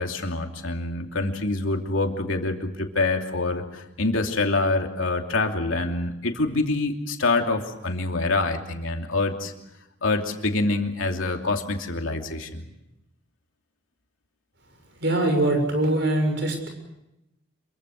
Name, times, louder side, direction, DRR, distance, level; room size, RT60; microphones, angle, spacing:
voice 1, 0.0-9.5 10.0-12.7, left 2 dB, 90° left, 3 dB, 2.9 m, -26 dB
voice 2, 15.0-16.7, right 1 dB, 60° right, 5 dB, 7.0 m, -22 dB
26.5 x 24.0 x 6.5 m, 0.88 s
head